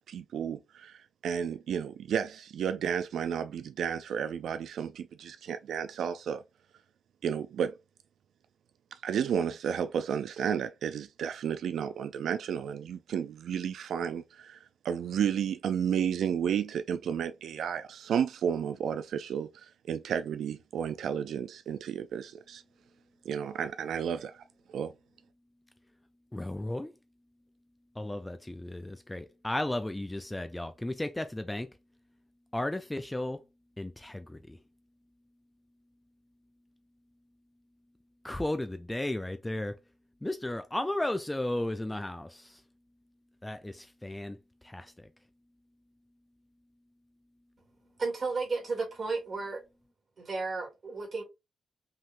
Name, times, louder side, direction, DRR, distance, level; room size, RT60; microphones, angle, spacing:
voice 1, 0.1-6.4 7.2-7.8 8.9-14.6 14.8-22.6 23.3-24.4 24.7-24.9, right 8 dB, 80° right, 0.3 m, -32 dB
voice 2, 26.3-26.9 28.0-31.7 32.5-33.4 33.8-34.6 38.2-39.7 40.2-42.6 43.4-44.4 44.6-45.1, left 1 dB, 10° left, 0.4 m, -34 dB
voice 3, 48.0-49.6 50.2-51.2, right 4 dB, 35° right, 2.4 m, -33 dB
5.4 x 3.6 x 2.5 m
wide cardioid pair, 165°, 0 cm